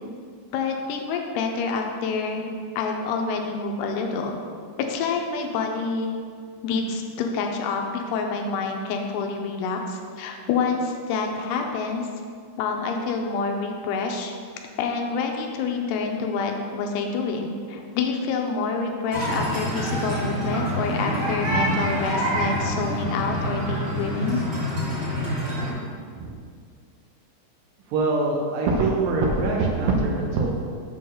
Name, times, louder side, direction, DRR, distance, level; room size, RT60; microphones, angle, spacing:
voice 1, 0.5-2.5 2.8-4.4 4.8-6.2 6.6-12.1 12.6-14.3 14.8-24.4, left 4 dB, 80° left, 3 dB, 2.6 m, -27 dB
sound 1, 19.1-25.7, equal, 60° right, 0.7 m, -26 dB
voice 2, 27.9-30.5, right 3 dB, 80° right, -1 dB, 2.1 m, -23 dB
7.5 x 3.9 x 6.3 m, 2.1 s
omnidirectional pair, 4.9 m